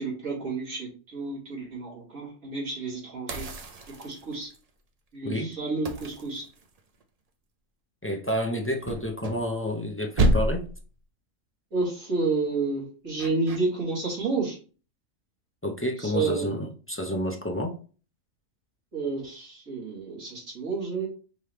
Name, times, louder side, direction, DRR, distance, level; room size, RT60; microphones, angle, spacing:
voice 1, 0.0-3.5 4.0-4.5 5.1-6.4 11.7-14.6 16.0-16.5 18.9-21.1, right 3 dB, 80° right, 2.8 m, -30 dB
sound 1, 3.3-4.6 5.9-7.0 8.8-9.9 10.2-10.9 13.2-13.6, right 1 dB, 45° right, 0.5 m, -28 dB
voice 2, 5.2-5.5 8.0-10.7 15.6-17.8, equal, 20° left, 0.4 m, -29 dB
5.4 x 3.0 x 3.2 m
omnidirectional pair, 1.4 m